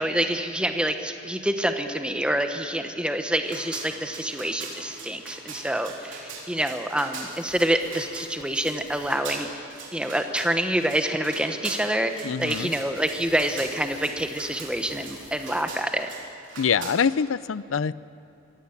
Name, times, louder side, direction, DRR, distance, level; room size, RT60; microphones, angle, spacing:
voice 1, 0.0-16.1, right 1 dB, 5° right, 6 dB, 1.1 m, -27 dB
sound 1, 3.4-16.9, right 4 dB, 65° right, 4.0 m, -41 dB
sound 2, 7.3-15.6, left 3 dB, 40° left, 3.1 m, -49 dB
voice 2, 12.2-12.7 16.6-17.9, left 6 dB, 75° left, 18 dB, 0.5 m, -24 dB
24.0 x 17.0 x 7.2 m, 2.9 s
head